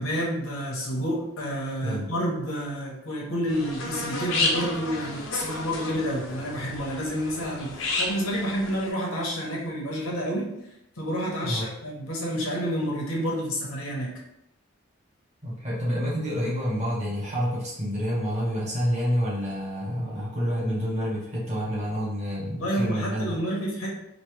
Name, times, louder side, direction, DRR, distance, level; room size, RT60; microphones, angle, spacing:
voice 1, 0.0-10.5 11.0-14.2 22.5-23.9, equal, 85° left, -3 dB, 1.1 m, -29 dB
voice 2, 1.8-2.1 11.4-11.7 15.4-23.4, equal, 35° right, -6 dB, 1.5 m, -28 dB
sound 1, 3.5-8.9, left 3 dB, 65° left, 0.7 m, -31 dB
4.2 x 2.7 x 3.2 m, 0.82 s
head